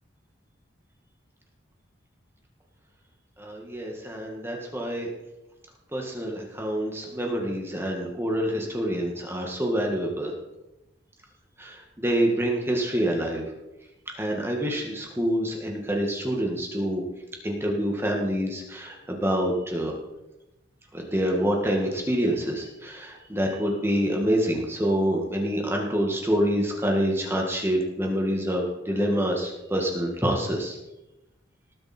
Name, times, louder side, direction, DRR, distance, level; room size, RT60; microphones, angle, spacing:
voice 1, 3.4-5.1 5.9-10.3 11.6-13.4 14.2-17.0 17.4-19.9 20.9-30.8, equal, 10° right, 0 dB, 1.8 m, -26 dB
19.5 x 7.7 x 4.4 m, 0.94 s
head